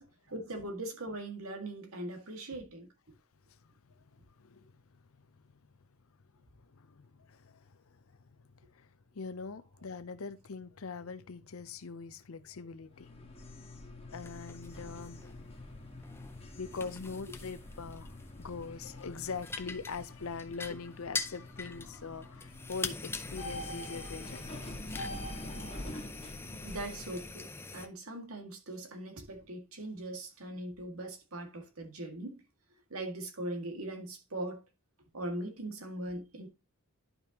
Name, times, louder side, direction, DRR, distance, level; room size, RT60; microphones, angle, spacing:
voice 1, 0.0-2.9 26.6-32.4 32.9-34.6 35.1-36.5, right 1 dB, 80° right, 2.0 m, -40 dB
voice 2, 3.9-4.8 5.3-5.5 6.6-13.2 14.1-15.5 16.6-24.7, left 5 dB, 75° left, 0.6 m, -43 dB
sound 1, 12.9-27.3, left 1 dB, 25° left, 1.5 m, -46 dB
sound 2, 14.2-27.9, left 3 dB, 10° left, 0.5 m, -44 dB
11.0 x 5.3 x 2.9 m
head